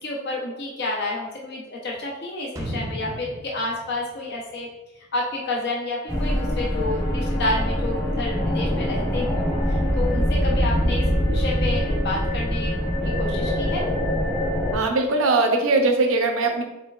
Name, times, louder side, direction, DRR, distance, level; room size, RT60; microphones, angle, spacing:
voice 1, 0.0-4.7 5.1-13.8, left 2 dB, 55° left, -3 dB, 0.8 m, -30 dB
sound 1, 2.6-5.4 5.7-5.8, equal, 15° right, 0.5 m, -36 dB
sound 2, 6.1-14.7, equal, 20° left, 1.0 m, -23 dB
voice 2, 14.7-16.6, right 3 dB, 75° right, 3 dB, 0.7 m, -20 dB
4.6 x 4.1 x 2.4 m, 0.98 s
head